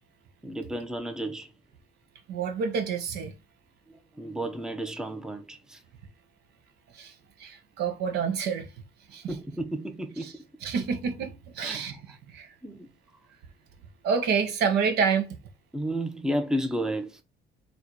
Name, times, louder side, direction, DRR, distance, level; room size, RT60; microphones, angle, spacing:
voice 1, 0.4-1.5 3.9-5.8 9.3-10.5 11.6-11.9 12.6-12.9 15.7-17.2, right 1 dB, 5° right, 0.6 m, -32 dB
voice 2, 2.3-3.3 6.9-7.1 7.4-8.7 9.1-9.3 10.2-10.3 10.6-12.0 12.3-12.5 14.0-15.3, right 6 dB, 75° right, 1.0 m, -28 dB
4.2 x 2.7 x 4.5 m
cardioid pair, 110°, 17 cm